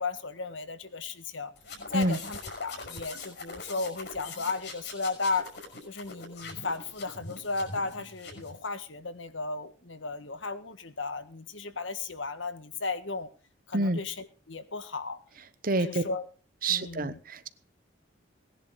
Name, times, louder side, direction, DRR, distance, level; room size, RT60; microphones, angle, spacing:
voice 1, 0.0-1.5 1.9-5.5 5.8-13.3 13.7-15.2 15.7-16.3 16.7-17.2, left 3 dB, 85° left, 11 dB, 1.6 m, -35 dB
sound 1, 1.6-8.6, left 3 dB, 60° left, 5.9 m, -43 dB
voice 2, 15.6-16.0 16.6-17.5, right 2 dB, 45° right, 13 dB, 1.0 m, -27 dB
19.0 x 11.0 x 5.0 m, 0.37 s
head